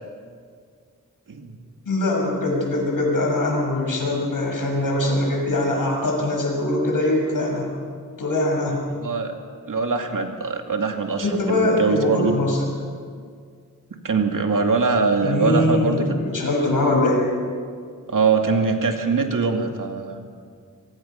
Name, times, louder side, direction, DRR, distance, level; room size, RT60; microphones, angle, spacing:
voice 1, 1.8-7.7 8.2-8.8 11.2-12.6 15.2-17.2, left 2 dB, 75° left, -1 dB, 6.7 m, -22 dB
voice 2, 8.9-9.4 9.7-12.3 14.0-16.3 16.8-16.9 18.1-20.3, right 4 dB, 70° right, 3 dB, 2.4 m, -23 dB
25.0 x 23.5 x 5.8 m, 2.1 s
wide cardioid pair, 95°, 33 cm